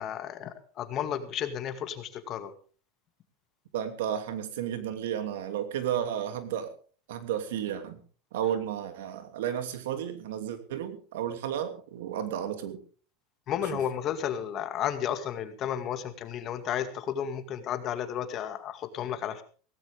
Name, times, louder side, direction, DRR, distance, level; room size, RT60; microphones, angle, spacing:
voice 1, 0.0-2.5 13.5-19.4, left 9 dB, 40° left, 9 dB, 2.2 m, -33 dB
voice 2, 3.7-6.7 7.1-8.0 8.3-12.8, right 10 dB, 85° right, 8 dB, 2.7 m, -32 dB
17.5 x 16.0 x 3.6 m, 0.39 s
supercardioid pair, 140°, 0 cm